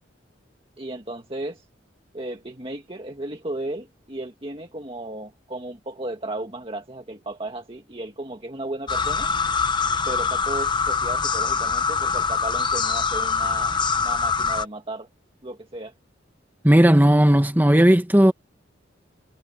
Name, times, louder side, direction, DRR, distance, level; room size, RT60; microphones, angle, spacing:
voice 1, 0.8-1.7 2.1-9.3 10.1-15.1 15.4-15.9, right 2 dB, 30° right, 1.9 m, -35 dB
sound 1, 8.9-14.6, left 5 dB, 25° left, 1.0 m, -24 dB
voice 2, 16.6-18.3, equal, 10° right, 1.2 m, -15 dB
head